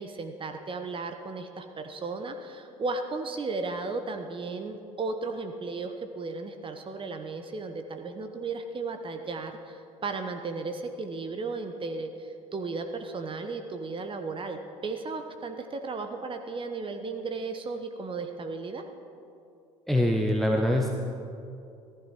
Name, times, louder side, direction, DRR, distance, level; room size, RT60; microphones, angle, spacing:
voice 1, 0.0-14.6 14.8-18.9, right 3 dB, 30° right, 6 dB, 1.1 m, -35 dB
voice 2, 19.9-20.9, left 1 dB, ahead, 1 dB, 1.1 m, -24 dB
15.5 x 14.0 x 4.5 m, 2.6 s
figure-of-eight pair, 60°, 18 cm